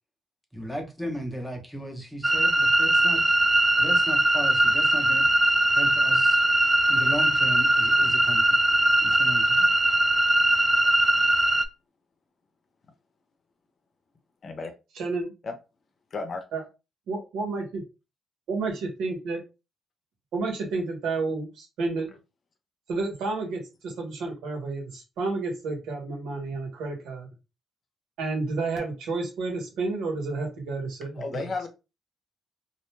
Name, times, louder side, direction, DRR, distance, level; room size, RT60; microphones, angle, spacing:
voice 1, 0.5-3.2 3.8-5.3 5.7-6.4 6.9-8.6 9.0-9.7, equal, 5° left, 0.9 m, -36 dB
sound 1, 2.2-11.7, right 1 dB, 15° right, 0.3 m, -21 dB
voice 2, 15.0-15.3 16.5-16.6 17.1-17.8 18.5-19.4 20.3-22.1 22.9-27.3 28.2-31.4, right 3 dB, 85° right, 1.2 m, -30 dB
voice 3, 16.1-16.4 31.2-31.7, left 3 dB, 45° left, 0.7 m, -32 dB
2.5 x 2.2 x 3.1 m
cardioid pair, 90°, 0 cm